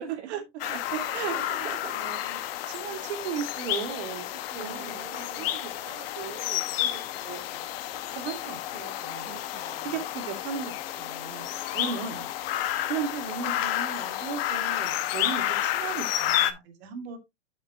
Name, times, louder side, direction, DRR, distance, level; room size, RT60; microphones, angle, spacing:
voice 1, 0.0-2.0 2.7-3.2 4.5-5.5 9.2-10.0, right 7 dB, 80° right, 1.5 m, -44 dB
sound 1, 0.6-16.5, left 13 dB, 55° left, 1.0 m, -31 dB
voice 2, 0.7-1.3 1.9-2.4 2.7-4.2 4.5-7.7 8.1-9.5 9.8-17.2, right 7 dB, 65° right, 2.6 m, -37 dB
7.8 x 7.4 x 2.5 m
supercardioid pair, 150°, 35 cm